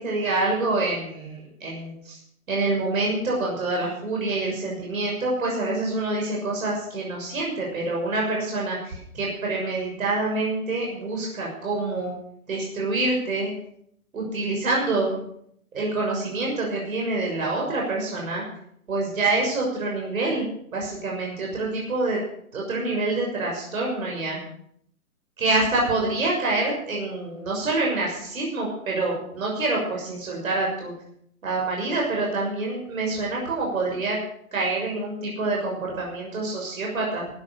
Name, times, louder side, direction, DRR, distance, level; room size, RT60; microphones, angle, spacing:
voice 1, 0.0-2.2 2.5-12.1 12.5-13.5 14.1-15.2 15.7-18.4 18.9-22.2 22.5-24.4 25.4-30.9 31.4-34.2 34.5-37.3, right 2 dB, 65° right, -2 dB, 6.6 m, -26 dB
15.0 x 12.0 x 6.8 m, 0.69 s
figure-of-eight pair, 125°, 43 cm